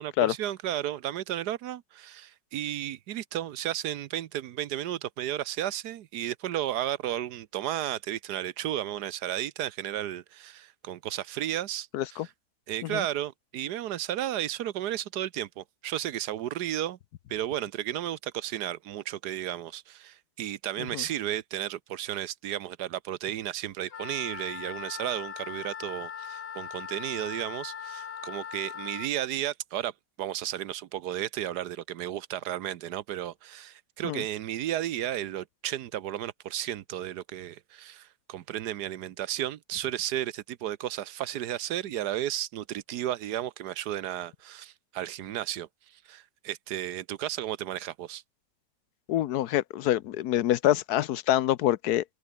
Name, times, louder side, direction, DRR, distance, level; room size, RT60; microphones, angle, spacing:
voice 1, 0.0-12.3 12.7-17.0 17.3-29.9 30.2-48.2, right 12 dB, 85° right, 1.4 m, -33 dB
voice 2, 11.9-12.3 12.8-13.0 20.9-21.0 34.0-34.2 49.1-52.0, left 13 dB, 75° left, 1.2 m, -26 dB
Wind instrument woodwind instrument, 23.9-29.1, left 8 dB, 45° left, 1.0 m, -40 dB
open air
omnidirectional pair, 1.7 m